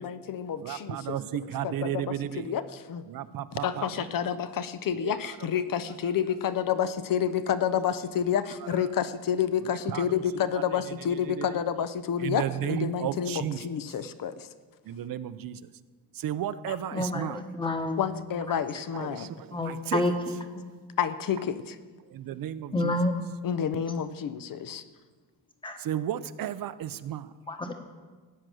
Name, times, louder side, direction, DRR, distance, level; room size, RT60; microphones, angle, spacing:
voice 1, 0.0-1.2 1.6-2.1 2.5-3.0 3.6-14.5 16.7-16.8 18.0-19.3 21.0-21.8 23.4-24.8, left 8 dB, 60° left, 12 dB, 0.7 m, -29 dB
voice 2, 0.6-2.5 3.1-4.1 4.9-5.4 9.6-10.2 10.5-10.6 11.1-11.6 12.2-13.7 14.8-15.7 16.1-17.4 18.9-20.0 22.1-23.0 25.8-27.3, right 11 dB, 65° right, 14 dB, 0.6 m, -34 dB
voice 3, 16.9-18.1 19.5-20.4 22.7-23.1 25.6-25.8 27.5-27.7, left 1 dB, 15° left, 6 dB, 1.2 m, -28 dB
15.5 x 9.0 x 6.2 m, 1.4 s
wide cardioid pair, 175°, 37 cm